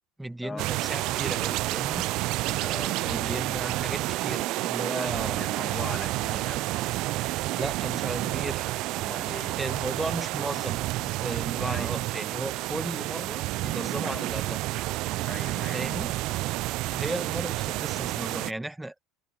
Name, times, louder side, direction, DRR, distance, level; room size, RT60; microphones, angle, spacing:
voice 1, 0.2-2.1 3.0-5.5 7.5-8.7 9.6-14.6 15.7-16.1 16.9-19.0, right 1 dB, 5° right, 1.5 m, -35 dB
sound 1, 0.6-18.5, right 19 dB, 60° right, 0.3 m, -30 dB
voice 2, 2.5-3.2 4.9-6.7 9.0-9.6 11.6-12.0 14.0-14.3 15.2-16.1, left 4 dB, 20° left, 1.9 m, -41 dB
hypercardioid pair, 90°, 0 cm